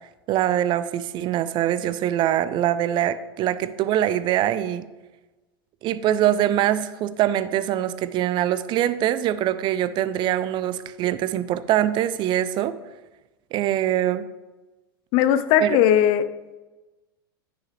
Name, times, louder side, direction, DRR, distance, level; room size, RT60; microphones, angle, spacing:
voice 1, 0.3-4.9 5.8-12.7 13.5-14.3 15.6-15.8, right 12 dB, 40° right, 14 dB, 0.5 m, -23 dB
voice 2, 15.1-16.2, left 10 dB, 50° left, 12 dB, 0.6 m, -18 dB
9.5 x 6.3 x 3.2 m, 1.1 s
hypercardioid pair, 95°, 12 cm